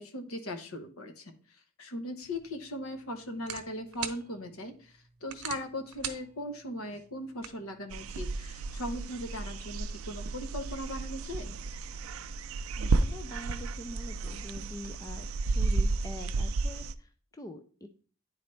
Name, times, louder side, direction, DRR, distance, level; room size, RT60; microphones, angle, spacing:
voice 1, 0.0-1.3 1.8-11.5, left 1 dB, 70° left, 7 dB, 1.0 m, -39 dB
sound 1, 2.2-8.3, right 9 dB, 85° right, 0.9 m, -45 dB
sound 2, 7.9-16.9, right 3 dB, 65° right, 0.4 m, -32 dB
voice 2, 12.8-15.3 15.5-17.9, left 1 dB, 15° left, 7 dB, 0.4 m, -44 dB
9.9 x 4.0 x 3.2 m, 0.41 s
head